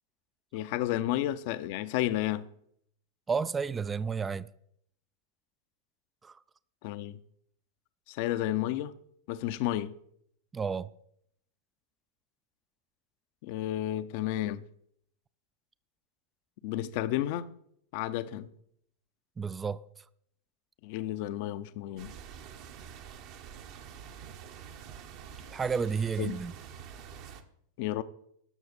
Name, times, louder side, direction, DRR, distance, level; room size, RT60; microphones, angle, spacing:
voice 1, 0.5-2.5 6.8-7.2 8.1-8.9 9.3-9.9 13.4-14.6 16.6-17.5 17.9-18.5 20.8-22.1 26.2-26.4 27.8-28.0, left 13 dB, 45° left, 0.7 m, -31 dB
voice 2, 3.3-4.5 6.2-6.4 10.5-10.9 19.4-19.8 25.5-26.5, right 5 dB, 15° right, 0.4 m, -31 dB
sound 1, 22.0-27.4, right 8 dB, 45° right, 1.1 m, -47 dB
18.0 x 6.5 x 4.2 m
figure-of-eight pair, 90°, 0 cm